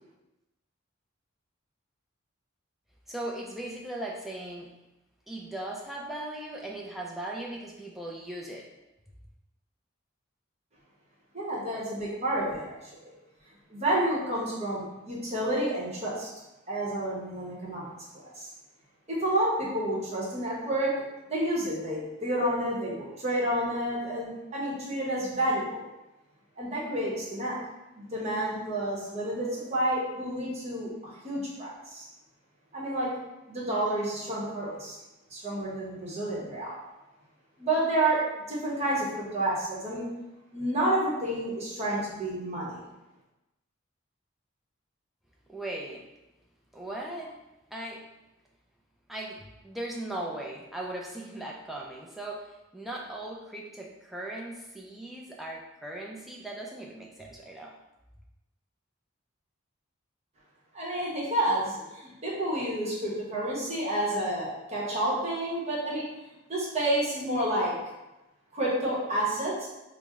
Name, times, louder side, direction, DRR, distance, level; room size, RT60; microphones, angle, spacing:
voice 1, 3.1-4.7 5.3-8.7 45.5-46.1 46.7-47.4 47.7-48.0 49.1-57.8, right 1 dB, ahead, -2 dB, 0.3 m, -38 dB
voice 2, 11.3-12.9 13.7-16.3 16.7-17.9 18.4-18.5 19.1-20.9 21.3-25.8 26.6-27.6 27.9-30.9 31.2-32.0 32.7-33.1 33.5-35.0 35.3-36.8 37.6-38.2 38.5-40.1 40.5-42.8 60.7-66.0 66.5-67.7 68.5-69.7, right 1 dB, 30° right, -6 dB, 0.8 m, -29 dB
3.2 x 2.0 x 3.4 m, 1.0 s
head